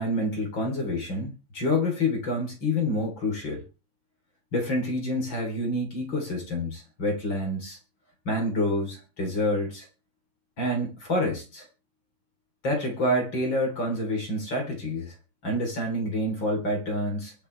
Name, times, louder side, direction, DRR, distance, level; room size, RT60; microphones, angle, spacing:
voice 1, 0.0-3.6 4.5-7.8 8.3-9.9 10.6-11.7 12.6-15.1 15.4-17.3, left 1 dB, 30° left, 1 dB, 3.9 m, -28 dB
23.0 x 8.4 x 3.4 m, 0.32 s
omnidirectional pair, 4.6 m